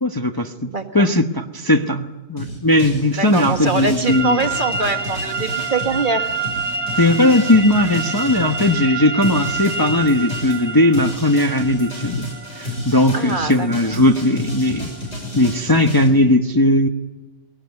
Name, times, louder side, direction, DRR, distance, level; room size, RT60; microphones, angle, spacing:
voice 1, 0.0-0.7 0.9-4.4 6.9-12.3 12.6-14.9 15.3-16.9, left 1 dB, 20° left, 5 dB, 0.9 m, -17 dB
voice 2, 0.6-1.1 3.1-6.4 13.1-14.0, right 3 dB, 40° right, 6 dB, 1.7 m, -23 dB
sound 1, 2.4-8.8 9.2-16.1, left 1 dB, 55° left, 6.4 m, -31 dB
sound 2, 4.0-15.6, right 4 dB, 90° right, 1.9 m, -29 dB
22.0 x 17.5 x 9.5 m, 1.1 s
omnidirectional pair, 1.4 m